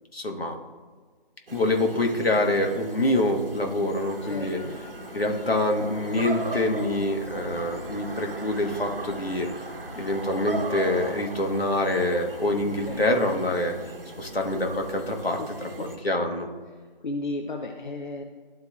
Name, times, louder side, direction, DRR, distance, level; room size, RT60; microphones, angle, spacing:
voice 1, 0.1-0.6 1.5-4.6 5.1-9.5 9.9-13.7 14.2-16.5, left 1 dB, 80° left, 2 dB, 1.3 m, -26 dB
sound 1, 1.5-16.0, right 1 dB, 70° right, 1.0 m, -38 dB
voice 2, 4.3-4.8 12.6-13.0 15.8-15.9 17.0-18.2, left 2 dB, 55° left, 2 dB, 0.7 m, -34 dB
12.0 x 4.4 x 2.3 m, 1.5 s
figure-of-eight pair, 165°, 30 cm